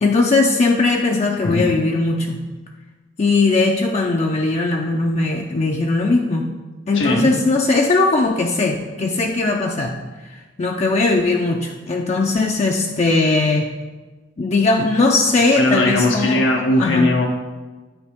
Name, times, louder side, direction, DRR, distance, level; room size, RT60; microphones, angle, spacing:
voice 1, 0.0-2.4 3.2-6.5 6.9-10.0 10.3-13.7 14.4-16.4 16.8-17.1, left 3 dB, 35° left, 1 dB, 0.4 m, -19 dB
voice 2, 6.9-7.3 15.5-17.3, left 1 dB, 85° left, 0 dB, 0.7 m, -18 dB
8.7 x 4.5 x 3.5 m, 1.3 s
head